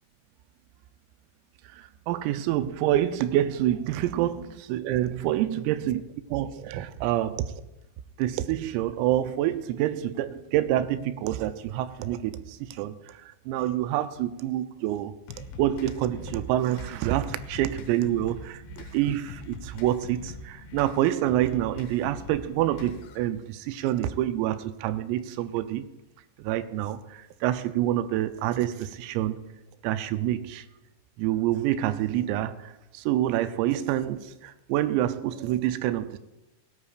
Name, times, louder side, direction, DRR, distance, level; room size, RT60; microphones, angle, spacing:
voice 1, 1.7-6.0 6.3-7.5 8.2-25.9 26.4-29.4 29.8-30.7 31.2-36.2, right 13 dB, 90° right, 3.4 m, -27 dB
sound 1, 15.3-23.3, left 4 dB, 90° left, 4.1 m, -43 dB
19.5 x 17.0 x 2.5 m
omnidirectional pair, 5.9 m